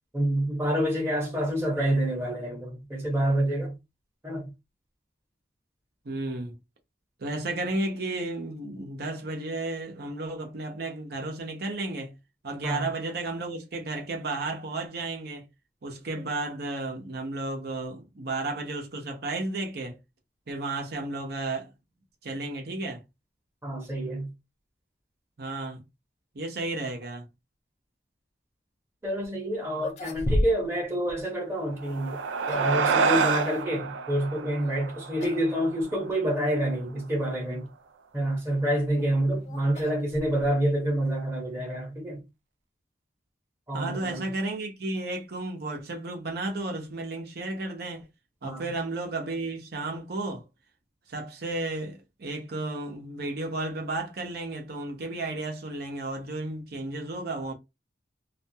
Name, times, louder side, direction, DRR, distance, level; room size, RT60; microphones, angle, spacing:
voice 1, 0.1-3.7 4.2-4.5 12.6-12.9 23.6-24.3 29.0-32.2 32.5-37.7 38.1-42.2 43.7-44.3 48.4-48.7, right 1 dB, 15° right, 0.9 m, -28 dB
voice 2, 6.0-6.6 7.2-12.1 12.4-15.5 15.8-20.0 20.5-21.7 22.2-23.0 25.4-25.8 26.3-27.3 43.7-48.1 48.4-50.5 51.1-57.5, right 2 dB, 60° right, 0.7 m, -33 dB
sound 1, 29.2-29.3 29.7-30.8 31.1-31.2 32.1-32.8 34.6-34.9 35.2-35.5 35.8-35.9 36.7-36.8 38.6-40.7, left 1 dB, 40° left, 0.4 m, -32 dB
sound 2, 31.7-36.4, right 5 dB, 85° right, 0.4 m, -28 dB
2.4 x 2.3 x 2.7 m
head